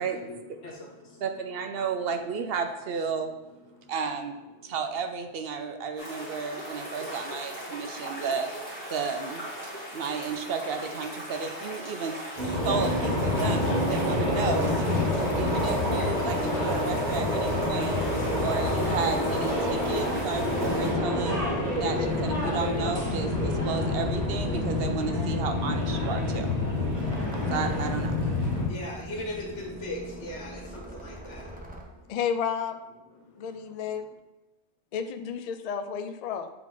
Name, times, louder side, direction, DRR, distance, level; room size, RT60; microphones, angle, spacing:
voice 1, 0.0-1.2 3.6-3.9 4.5-4.8 28.1-32.2 33.0-34.1, left 1 dB, 90° left, 0 dB, 1.6 m, -41 dB
voice 2, 1.2-3.3 3.9-8.5 8.9-9.5 9.9-12.2 12.6-14.9 15.1-18.0 18.4-21.4 21.8-26.5 27.5-28.2, right 5 dB, 65° right, 7 dB, 0.7 m, -33 dB
sound 1, 6.0-20.9, equal, 15° left, 2.3 m, -39 dB
sound 2, 12.4-28.7, left 1 dB, 35° right, 1.9 m, -27 dB
sound 3, 17.4-31.8, equal, 10° right, 0.7 m, -42 dB
voice 3, 32.1-32.8 33.4-34.0 34.9-36.5, left 7 dB, 65° left, 8 dB, 0.4 m, -31 dB
7.7 x 3.7 x 3.8 m, 1.0 s
omnidirectional pair, 1.2 m